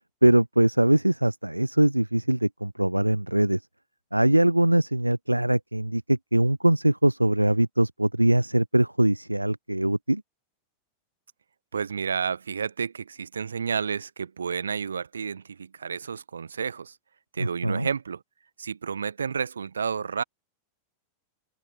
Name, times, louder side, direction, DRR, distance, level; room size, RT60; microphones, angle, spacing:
voice 1, 0.2-3.6 4.1-10.2 17.4-17.9, right 1 dB, 85° right, 0.3 m, -22 dB
voice 2, 11.7-16.9 17.3-18.2 18.6-20.2, right 6 dB, 70° right, 1.2 m, -31 dB
open air
figure-of-eight pair, 90°, 0 cm